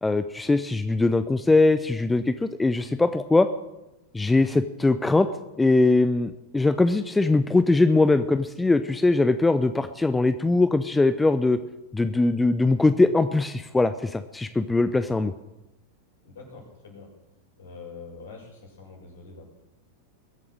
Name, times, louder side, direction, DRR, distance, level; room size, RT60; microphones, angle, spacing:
voice 1, 0.0-3.5 4.1-5.3 5.6-11.6 11.9-15.3, left 3 dB, 10° left, 11 dB, 0.7 m, -21 dB
voice 2, 16.2-17.1 17.6-19.5, left 4 dB, 60° left, 0 dB, 6.8 m, -44 dB
22.0 x 8.6 x 6.4 m, 0.97 s
figure-of-eight pair, 90°, 0 cm